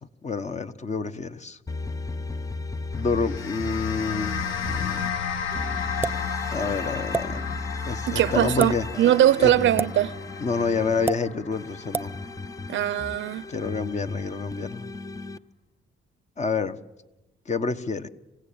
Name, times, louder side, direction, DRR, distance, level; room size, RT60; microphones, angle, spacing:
voice 1, 0.2-1.6 2.9-4.3 4.7-5.1 6.0-6.1 6.5-7.6 7.8-8.9 9.4-9.5 10.4-12.1 13.5-14.9 16.4-16.8 17.5-18.1, left 4 dB, 35° left, 1.3 m, -28 dB
sound 1, 1.7-5.1 5.5-11.1 11.5-15.4, left 3 dB, 15° left, 0.7 m, -35 dB
sound 2, 2.9-13.5, left 7 dB, 75° left, 1.5 m, -34 dB
sound 3, 6.0-6.2 7.1-7.3 8.5-8.7 9.8-9.9 11.1-11.2 11.9-12.1, right 4 dB, 10° right, 0.9 m, -26 dB
voice 2, 8.1-10.1 12.7-13.4, right 12 dB, 70° right, 0.7 m, -21 dB
27.0 x 16.5 x 8.7 m
cardioid pair, 90°, 20 cm